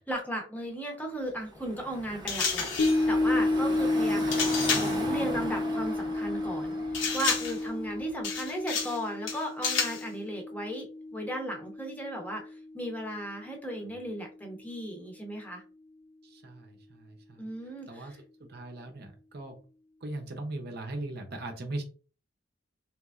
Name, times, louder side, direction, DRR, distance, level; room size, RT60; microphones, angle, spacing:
voice 1, 0.0-4.4 4.7-10.9 11.1-15.6 17.4-18.2, right 1 dB, 10° left, 1 dB, 0.7 m, -36 dB
Car passing by / Traffic noise roadway noise, 1.4-8.3, right 1 dB, 25° right, 0.7 m, -39 dB
sound 1, 2.3-3.0 4.3-5.0 6.9-7.6 8.2-9.0 9.3-10.0, left 5 dB, 75° left, 0.9 m, -30 dB
sound 2, 2.8-13.2 13.5-13.6, left 2 dB, 55° left, 0.6 m, -31 dB
voice 2, 16.2-17.5 17.9-18.1 18.4-19.6 20.0-21.8, right 2 dB, 55° right, 3 dB, 0.7 m, -39 dB
3.4 x 3.0 x 2.4 m, 0.36 s
head